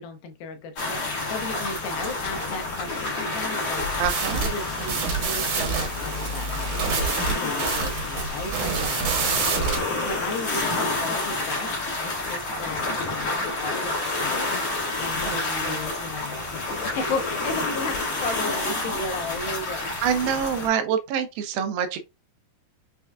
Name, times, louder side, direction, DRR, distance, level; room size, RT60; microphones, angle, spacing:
voice 1, 0.0-3.8 4.3-11.7 12.0-16.4 16.8-19.9, left 3 dB, 80° left, 2.3 m, -35 dB
sound 1, 0.8-20.7, left 2 dB, 55° left, 1.4 m, -29 dB
sound 2, 4.0-9.8, right 5 dB, 65° right, 2.1 m, -27 dB
voice 2, 4.0-4.5 7.9-8.0 10.6-10.8 15.2-15.7 20.0-22.0, right 8 dB, 80° right, 2.3 m, -26 dB
6.2 x 2.3 x 2.3 m
omnidirectional pair, 4.4 m